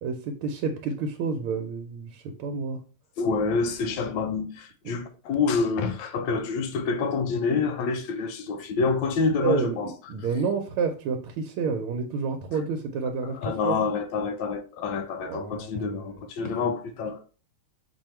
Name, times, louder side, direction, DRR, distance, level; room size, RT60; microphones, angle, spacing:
voice 1, 0.0-2.8 9.4-13.8 15.2-16.2, right 5 dB, 90° right, 1.5 m, -29 dB
voice 2, 3.2-9.9 13.3-17.2, left 4 dB, 75° left, 1.2 m, -27 dB
4.6 x 2.7 x 4.3 m
omnidirectional pair, 2.3 m